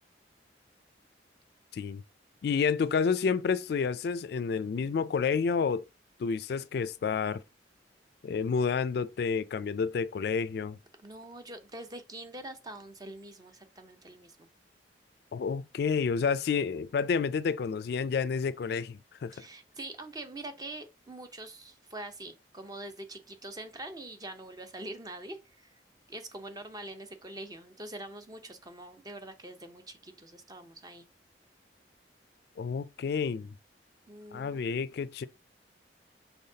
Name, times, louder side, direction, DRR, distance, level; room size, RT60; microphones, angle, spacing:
voice 1, 2.4-5.8 6.2-7.4 8.2-10.8 15.3-19.3 32.6-33.5 34.3-35.3, left 5 dB, 60° left, 0.3 m, -29 dB
voice 2, 11.0-14.5 19.3-25.8 26.1-31.1 34.1-34.7, right 1 dB, 20° right, 0.6 m, -44 dB
5.6 x 3.5 x 2.7 m
head